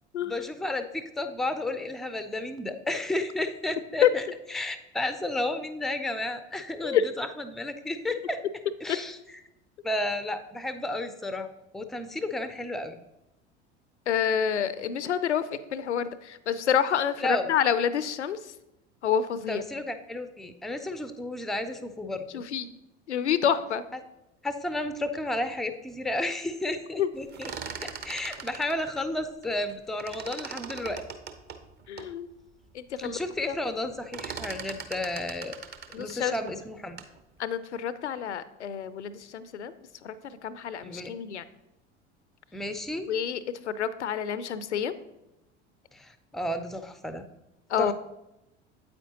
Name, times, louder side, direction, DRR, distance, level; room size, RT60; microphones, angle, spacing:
voice 1, 0.2-4.2 4.5-8.4 8.8-9.2 9.8-11.5 11.7-13.0 17.2-17.5 19.5-22.4 24.4-27.5 27.8-31.0 33.0-35.6 36.0-37.0 40.8-41.1 42.5-43.1 45.9-47.2 47.8-47.9, left 1 dB, ahead, 9 dB, 0.4 m, -32 dB
voice 2, 14.1-18.5 19.0-19.6 22.3-22.7 23.1-23.8 27.0-27.1 31.9-32.3 32.7-33.2 33.5-33.6 35.9-36.4 37.4-39.7 40.0-41.4 43.1-44.9 47.7-47.9, left 8 dB, 80° left, 15 dB, 0.6 m, -28 dB
sound 1, 27.2-29.7 30.0-32.1 32.6-32.7 33.0-33.4 33.7-37.2, right 6 dB, 30° right, 0.8 m, -40 dB
8.6 x 8.4 x 2.8 m, 0.92 s
figure-of-eight pair, 70°, 34 cm